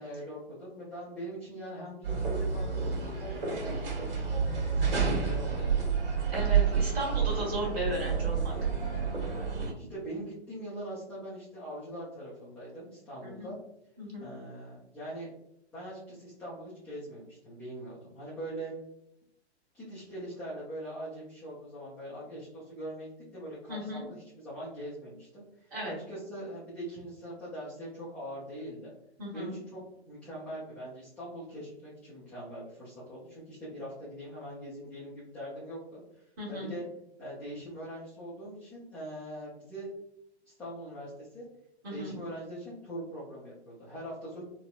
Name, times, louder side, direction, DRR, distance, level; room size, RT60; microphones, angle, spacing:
voice 1, 0.0-5.9 9.8-13.6 14.2-15.3 15.7-18.7 19.7-28.9 29.3-36.8 37.2-39.9 40.5-41.4 41.9-44.4, right 1 dB, 5° left, -10 dB, 0.4 m, -42 dB
sound 1, 2.0-9.7, right 6 dB, 55° right, 1.5 m, -29 dB
voice 2, 6.3-8.5 13.2-13.5 14.0-14.3 23.7-24.0 25.7-25.9 29.2-29.5 36.4-36.7 41.8-42.1, equal, 25° right, -3 dB, 1.3 m, -35 dB
3.9 x 2.0 x 2.4 m, 0.81 s
figure-of-eight pair, 120°, 34 cm